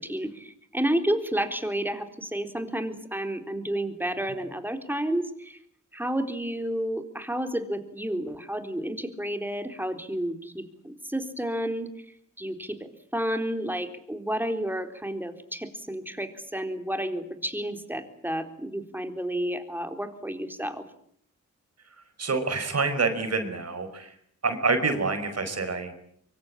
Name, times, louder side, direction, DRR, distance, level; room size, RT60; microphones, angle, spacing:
voice 1, 0.0-5.6 5.9-11.9 12.4-12.8 13.1-20.8, right 1 dB, 5° right, 7 dB, 3.8 m, -31 dB
voice 2, 22.2-24.1 24.4-25.9, right 4 dB, 50° right, 8 dB, 5.0 m, -27 dB
24.5 x 24.0 x 8.8 m, 0.67 s
cardioid pair, 80°, 31 cm